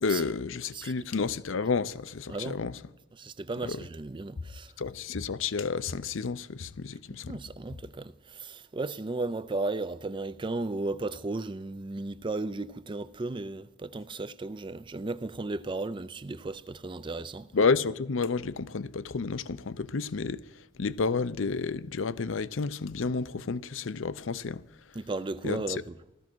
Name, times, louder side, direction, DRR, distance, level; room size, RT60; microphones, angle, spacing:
voice 1, 0.0-2.8 3.6-3.8 4.8-7.4 17.5-20.4 20.8-24.6 25.4-25.8, left 4 dB, 70° left, 0.6 m, -30 dB
voice 2, 3.2-4.7 7.3-17.5 24.9-25.9, right 2 dB, 25° right, 0.5 m, -35 dB
15.5 x 13.0 x 6.2 m
head